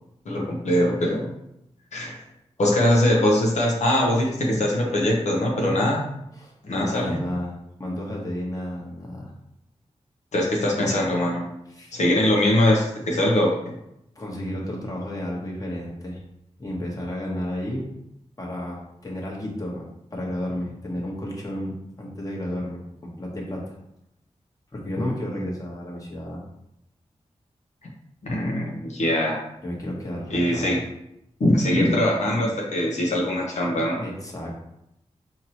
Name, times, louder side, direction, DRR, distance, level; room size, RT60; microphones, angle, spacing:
voice 1, 0.3-1.3 1.9-2.2 2.6-6.1 6.6-7.2 10.3-11.5 11.9-13.7 28.2-29.4 30.3-30.8 31.4-34.0, left 1 dB, 75° left, -3 dB, 0.7 m, -22 dB
voice 2, 6.3-7.5 7.8-9.3 11.7-11.9 14.1-16.2 16.6-17.9 18.4-23.8 24.7-26.4 29.6-30.8 34.0-34.6, left 1 dB, 30° left, -3 dB, 1.1 m, -32 dB
4.4 x 2.8 x 2.9 m, 0.82 s
wide cardioid pair, 75°, 12 cm